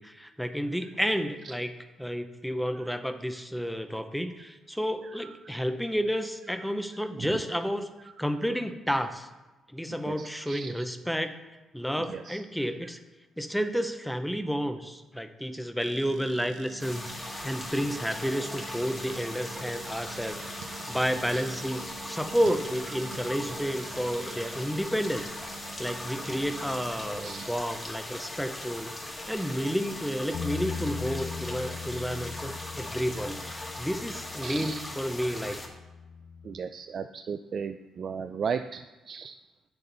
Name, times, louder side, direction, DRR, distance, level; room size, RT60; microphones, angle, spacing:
voice 1, 0.0-1.7 2.0-7.9 8.2-9.3 9.7-11.4 11.7-13.0 13.4-20.6 20.9-25.3 25.8-35.6, equal, ahead, 9 dB, 0.7 m, -31 dB
voice 2, 5.0-5.3 6.6-6.7 7.2-7.4 8.2-8.3 10.0-10.8 12.0-12.4 19.0-19.1 21.3-21.5 23.9-24.0 24.2-24.4 26.1-26.2 27.2-27.5 31.3-31.4 33.2-33.3 34.4-34.8 35.2-35.5 36.4-39.3, right 6 dB, 50° right, 8 dB, 0.3 m, -37 dB
sound 1, 15.8-27.5, right 8 dB, 85° right, 0.7 m, -47 dB
sound 2, 16.8-35.7, left 1 dB, 20° left, 1.6 m, -39 dB
Bass guitar, 30.3-36.6, left 6 dB, 70° left, 0.5 m, -40 dB
8.2 x 6.7 x 4.0 m, 1.1 s
cardioid pair, 90°, 0 cm